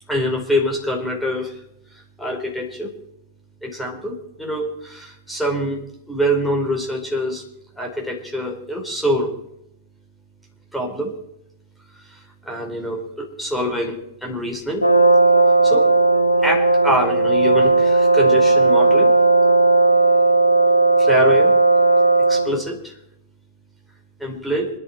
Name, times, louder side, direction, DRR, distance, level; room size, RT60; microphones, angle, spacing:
voice 1, 0.1-1.6 2.2-2.9 3.6-7.4 7.8-9.3 10.7-11.1 12.4-14.9 15.6-15.9 16.4-19.1 21.0-21.6 22.3-22.9 24.2-24.7, equal, ahead, 0 dB, 4.7 m, -25 dB
Brass instrument, 14.8-22.6, right 3 dB, 80° left, 0.9 m, -15 dB
27.0 x 11.0 x 4.6 m, 0.78 s
figure-of-eight pair, 90°, 0 cm